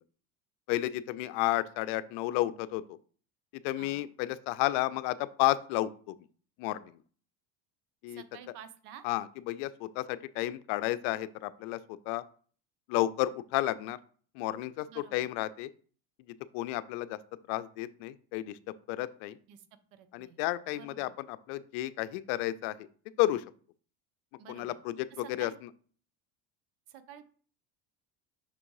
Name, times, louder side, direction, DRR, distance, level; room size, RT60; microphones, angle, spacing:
voice 1, 0.7-3.0 3.5-6.2 6.6-6.9 8.0-8.2 9.0-12.2 12.9-14.0 14.4-15.7 16.5-17.2 17.5-18.6 18.9-19.4 20.1-22.9 23.2-23.4 24.5-25.5, left 16 dB, 70° left, 16 dB, 0.5 m, -32 dB
voice 2, 3.8-4.1 8.1-9.0 14.9-15.3 19.5-19.6 19.9-20.4 20.7-21.1 24.4-24.8 25.2-25.6 26.9-27.3, right 9 dB, 70° right, 12 dB, 0.9 m, -50 dB
6.0 x 3.6 x 4.7 m, 0.44 s
supercardioid pair, 110°, 42 cm